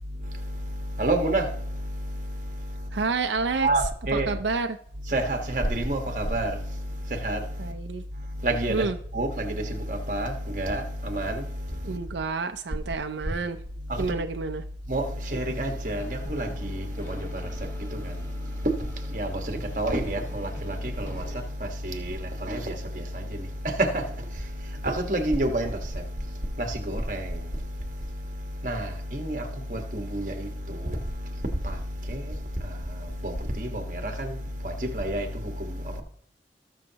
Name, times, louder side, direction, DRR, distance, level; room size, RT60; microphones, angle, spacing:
voice 1, 0.0-3.1 3.6-4.4 5.0-7.7 8.1-12.2 12.7-13.0 13.2-13.4 13.8-14.2 14.8-36.0, right 1 dB, 45° right, 1.4 m, -30 dB
voice 2, 2.9-3.7 4.1-4.8 7.6-8.0 8.7-8.9 11.8-13.6 14.0-14.6, right 4 dB, 85° right, 0.5 m, -29 dB
sound 1, 15.5-21.5, left 1 dB, 15° left, 1.2 m, -45 dB
19.0 x 6.5 x 2.9 m
head